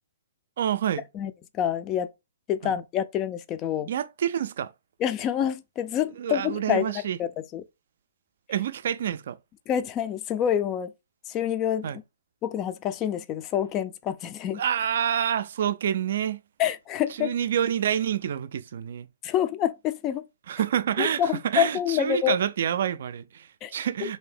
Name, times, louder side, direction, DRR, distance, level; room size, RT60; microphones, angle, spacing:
voice 1, 0.6-1.0 2.6-2.7 3.9-4.7 6.2-7.2 8.5-9.4 11.8-12.0 14.5-16.4 17.2-19.1 20.5-24.2, right 9 dB, 55° right, 0.3 m, -27 dB
voice 2, 1.1-2.1 2.5-3.9 5.0-7.6 9.7-10.9 11.3-11.9 12.4-14.6 16.6-17.3 19.2-20.3 21.0-22.4 23.6-23.7, left 10 dB, 25° left, 0.4 m, -27 dB
3.3 x 2.7 x 3.3 m
figure-of-eight pair, 125°, 0 cm